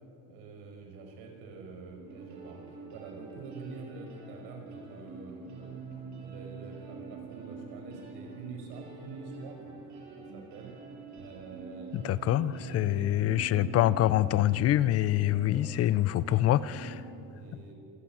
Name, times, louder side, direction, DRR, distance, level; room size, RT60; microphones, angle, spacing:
voice 1, 0.3-2.6 2.9-5.9 6.2-9.7 10.2-10.8 11.1-13.8 15.4-15.7 16.9-17.7, right 4 dB, 90° right, 3 dB, 5.4 m, -46 dB
sound 1, 2.0-17.1, right 5 dB, 50° right, 7.2 m, -45 dB
voice 2, 11.9-17.0, left 13 dB, 40° left, 17 dB, 0.5 m, -26 dB
26.0 x 14.0 x 8.8 m, 2.7 s
cardioid pair, 165°, 36 cm